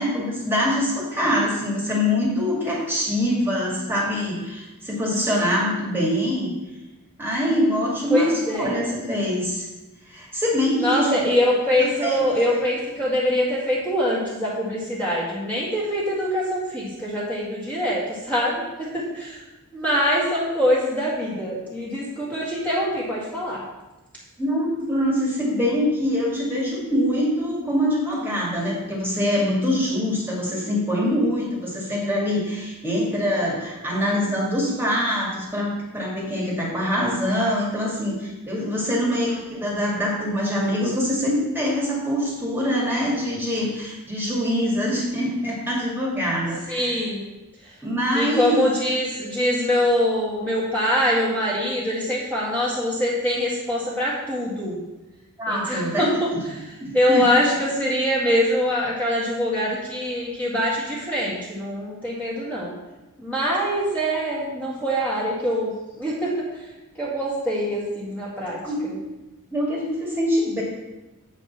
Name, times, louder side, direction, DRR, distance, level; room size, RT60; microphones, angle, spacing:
voice 1, 0.0-6.5 7.2-9.7 10.1-11.2 11.8-12.2 24.4-47.0 47.8-48.6 55.4-56.4 56.8-57.5 68.6-68.9 69.5-70.6, equal, 10° right, -4 dB, 2.1 m, -24 dB
voice 2, 8.1-8.7 10.8-19.4 19.7-23.6 39.1-39.2 46.7-47.3 47.6-47.7 48.1-54.7 55.5-56.3 56.9-62.7 63.2-65.7 66.0-66.5 67.0-68.9, equal, 5° left, -8 dB, 2.0 m, -24 dB
8.1 x 5.3 x 6.0 m, 1.0 s
head